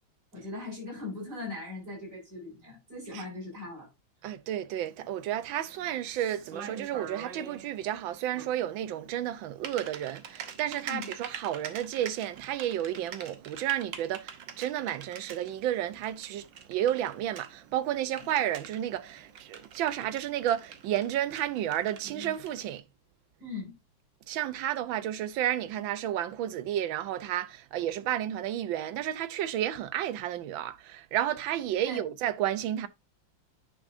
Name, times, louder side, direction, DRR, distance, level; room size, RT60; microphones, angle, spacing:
voice 1, 0.3-3.9 10.8-11.1 23.4-23.7 31.8-32.0, left 3 dB, 40° right, 6.4 m, -39 dB
voice 2, 4.2-22.8 24.3-32.9, right 11 dB, 85° right, 1.5 m, -32 dB
Typing, 4.7-22.8, right 7 dB, 70° right, 1.7 m, -46 dB
9.9 x 6.2 x 2.6 m
omnidirectional pair, 2.1 m